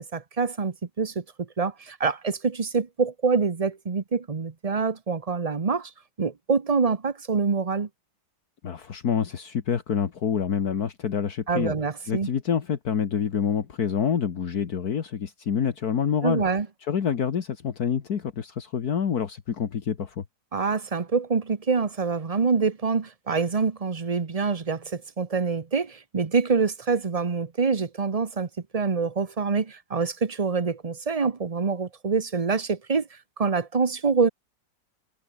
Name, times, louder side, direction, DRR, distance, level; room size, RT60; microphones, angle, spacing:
voice 1, 0.1-5.9 6.2-7.9 11.5-12.3 16.2-16.7 20.5-28.5 28.7-33.1 33.4-34.3, right 5 dB, 25° right, 0.9 m, -25 dB
voice 2, 8.6-11.7 12.1-16.4 16.9-20.2, left 7 dB, 65° left, 2.0 m, -27 dB
omnidirectional pair, 1.8 m